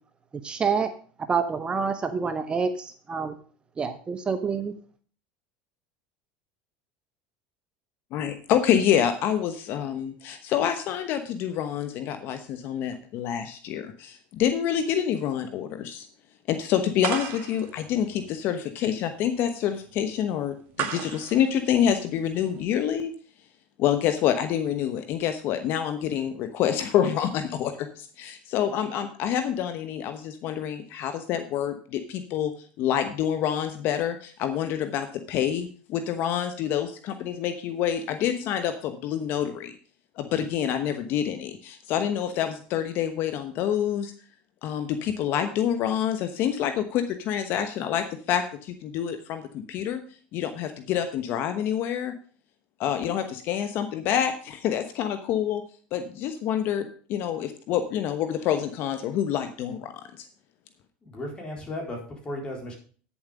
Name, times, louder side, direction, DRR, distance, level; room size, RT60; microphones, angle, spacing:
voice 1, 0.4-0.9 1.3-3.3 3.8-4.7, right 5 dB, 25° right, 9 dB, 0.9 m, -27 dB
voice 2, 8.1-16.1 16.5-23.1 23.8-32.5 32.8-39.7 40.2-44.1 44.6-50.0 50.3-52.1 52.8-55.6 55.9-60.3, left 9 dB, 55° left, 9 dB, 1.0 m, -27 dB
sound 1, 17.0-22.6, right 8 dB, 50° right, 1.7 m, -36 dB
voice 3, 61.0-62.7, left 1 dB, 20° left, 1 dB, 4.1 m, -35 dB
9.7 x 7.3 x 5.0 m, 0.43 s
supercardioid pair, 115°, 4 cm